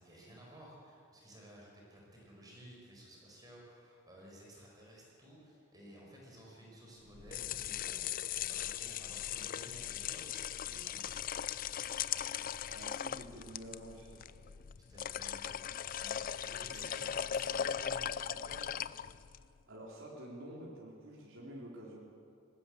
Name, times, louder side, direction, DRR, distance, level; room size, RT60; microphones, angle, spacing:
voice 1, 0.0-11.4 14.8-15.6 16.0-16.9 17.2-18.8, right 1 dB, 20° right, -3 dB, 5.1 m, -55 dB
sound 1, 7.1-19.5, left 9 dB, 45° left, 0.4 m, -39 dB
voice 2, 12.7-14.3 16.7-17.1 19.7-22.0, right 1 dB, 70° right, -4 dB, 4.0 m, -49 dB
20.0 x 17.5 x 8.1 m, 2.3 s
head